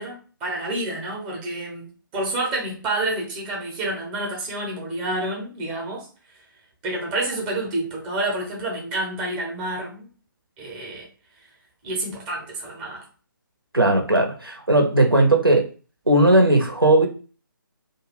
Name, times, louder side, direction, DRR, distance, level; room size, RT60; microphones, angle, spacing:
voice 1, 0.0-6.1 6.8-10.1 10.6-11.1 11.8-13.0, right 2 dB, 15° right, 0.7 m, -29 dB
voice 2, 13.7-15.7 16.1-17.1, right 1 dB, 90° right, 0.9 m, -17 dB
2.4 x 2.3 x 3.3 m
figure-of-eight pair, 145°, 12 cm